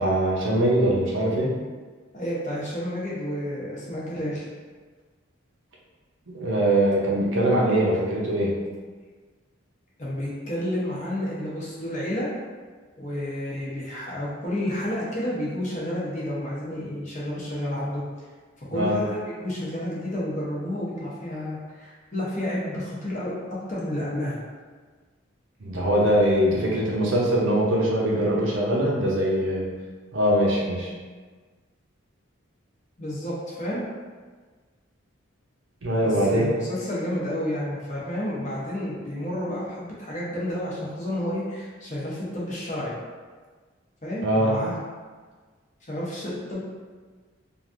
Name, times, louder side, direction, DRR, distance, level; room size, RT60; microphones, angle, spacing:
voice 1, 0.0-1.5 6.3-8.5 18.7-19.0 25.6-29.7 30.1-30.9 35.8-36.5 44.2-44.5, right 1 dB, 70° right, -4 dB, 0.7 m, -22 dB
voice 2, 2.1-4.4 10.0-12.3 13.0-18.0 18.7-23.3 23.7-24.4 33.0-33.8 36.0-42.9 44.0-44.8 45.9-46.6, left 1 dB, 35° left, -6 dB, 0.7 m, -30 dB
3.1 x 2.5 x 2.5 m, 1.4 s
head